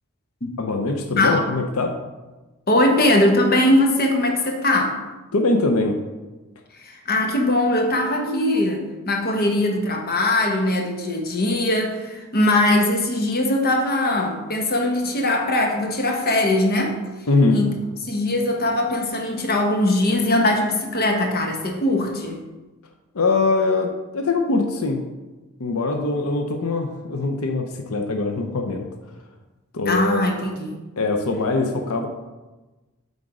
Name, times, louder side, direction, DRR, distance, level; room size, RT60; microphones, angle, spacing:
voice 1, 0.6-1.9 5.3-6.0 17.3-17.6 23.1-25.0 25.6-28.9 29.7-30.3 31.0-32.1, left 3 dB, 90° left, 4 dB, 0.7 m, -22 dB
voice 2, 2.7-5.0 6.8-17.0 17.5-17.7 18.0-22.4 29.9-30.8, left 1 dB, 45° left, 2 dB, 1.0 m, -21 dB
7.9 x 3.6 x 4.9 m, 1.1 s
head